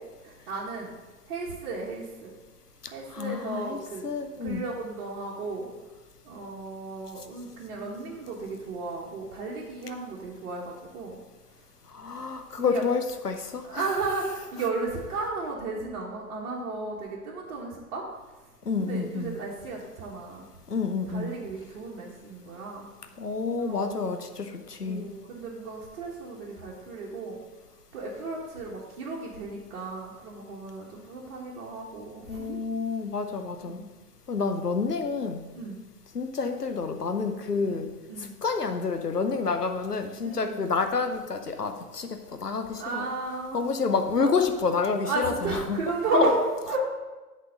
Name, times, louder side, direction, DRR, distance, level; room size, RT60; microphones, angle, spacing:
voice 1, 0.2-0.9 1.3-2.3 2.9-4.1 4.4-5.7 6.2-11.2 12.6-12.8 13.6-18.0 18.8-20.5 21.1-22.9 23.6-24.1 24.8-27.4 27.9-32.7 33.6-33.9 35.5-35.7 37.6-38.3 40.2-40.6 42.8-43.7 44.2-44.5 45.0-46.8, right 3 dB, 50° right, -5 dB, 1.6 m, -34 dB
voice 2, 3.1-4.6 11.9-13.9 18.7-19.3 20.7-21.3 23.2-25.1 32.3-33.8 34.3-35.4 36.1-37.9 38.4-43.1 43.5-45.8 46.1-46.3, left 4 dB, 90° left, 6 dB, 0.8 m, -29 dB
8.2 x 4.3 x 6.5 m, 1.2 s
figure-of-eight pair, 90°, 45 cm